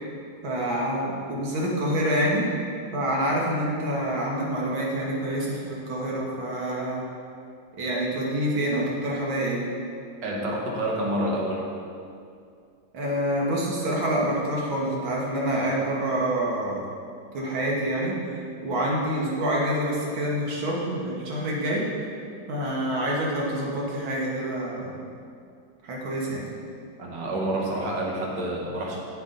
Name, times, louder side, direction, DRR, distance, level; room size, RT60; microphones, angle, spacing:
voice 1, 0.4-2.5 2.9-7.0 7.8-9.6 12.9-16.8 17.3-21.9 22.5-25.0 25.8-26.5, right 1 dB, 90° right, -3 dB, 2.2 m, -27 dB
voice 2, 10.2-11.6 27.0-29.0, right 1 dB, 65° right, -2 dB, 2.0 m, -28 dB
8.4 x 7.9 x 3.9 m, 2.4 s
omnidirectional pair, 2.1 m